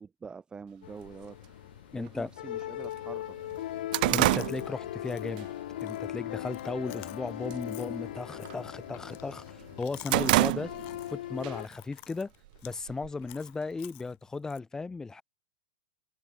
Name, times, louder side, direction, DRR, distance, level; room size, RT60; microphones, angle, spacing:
voice 1, 0.0-1.6 1.9-3.4, right 5 dB, 15° right, 4.9 m, -45 dB
sound 1, 0.8-11.7, left 13 dB, 70° left, 1.3 m, -39 dB
sound 2, 1.1-1.2 2.1-2.2 2.6-2.7 3.1-5.5 5.9-6.2 6.6-7.1 7.4-7.7 8.0-9.2 9.6-11.1 11.4-11.6 12.5-13.3, right 20 dB, 55° right, 0.7 m, -28 dB
voice 2, 1.9-2.3 4.1-5.5 5.8-10.7 11.1-12.3 12.6-15.2, left 4 dB, 10° left, 1.7 m, -36 dB
Chewing mastication, 4.1-14.6, left 27 dB, 45° left, 5.1 m, -53 dB
hypercardioid pair, 115°, 5 cm